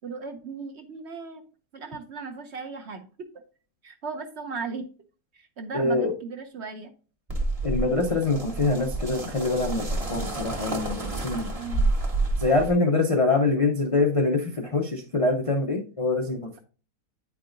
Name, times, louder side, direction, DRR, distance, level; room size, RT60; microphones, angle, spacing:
voice 1, 0.0-1.4 1.7-3.3 3.8-4.9 5.3-6.9 11.6-11.9, right 4 dB, 55° right, 5 dB, 0.8 m, -37 dB
voice 2, 5.7-6.1 7.6-11.5 12.4-16.6, left 3 dB, 50° left, 2 dB, 0.4 m, -24 dB
sound 1, 7.3-12.7, right 2 dB, 25° right, 1.0 m, -29 dB
9.1 x 4.6 x 2.5 m, 0.37 s
omnidirectional pair, 1.6 m